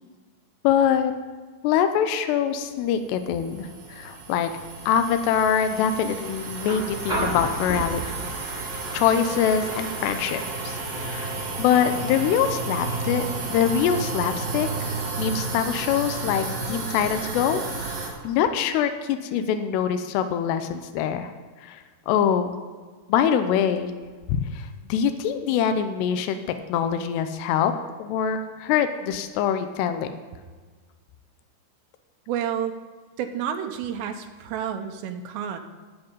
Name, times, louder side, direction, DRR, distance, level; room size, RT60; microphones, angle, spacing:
voice 1, 0.6-1.2 1.6-4.5 4.9-8.3 8.9-11.3 11.6-17.6 17.9-21.3 21.6-22.5 23.1-23.9 24.3-26.4 26.7-27.7 28.0-30.1, left 8 dB, 85° left, 8 dB, 2.8 m, -24 dB
sound 1, 2.9-18.1, right 3 dB, 60° right, 4.1 m, -32 dB
sound 2, 6.6-14.6 16.0-16.1, right 1 dB, 10° right, 3.1 m, -35 dB
voice 2, 32.3-32.8 33.2-35.6, right 8 dB, 85° right, 6 dB, 2.9 m, -30 dB
13.5 x 8.1 x 5.3 m, 1.4 s
omnidirectional pair, 4.9 m